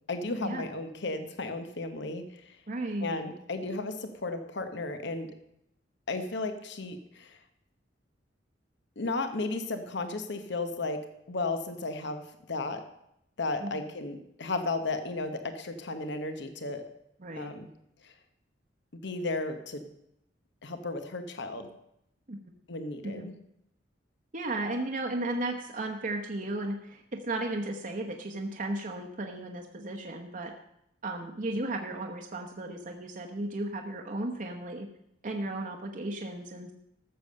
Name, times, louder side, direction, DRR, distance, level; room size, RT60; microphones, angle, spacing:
voice 1, 0.1-2.6 3.0-5.3 6.1-7.4 9.0-11.0 11.3-12.2 12.5-12.8 13.4-16.8 17.4-17.7 18.0-18.1 19.0-19.9 20.6-21.7 22.7-23.3, left 3 dB, 65° left, 8 dB, 1.1 m, -34 dB
voice 2, 2.7-3.2 13.6-13.8 17.2-17.5 22.3-22.4 23.2-23.3 24.3-30.5 31.0-34.9 35.2-36.7, right 2 dB, 45° right, 2 dB, 1.0 m, -35 dB
14.0 x 6.9 x 6.6 m, 0.79 s
head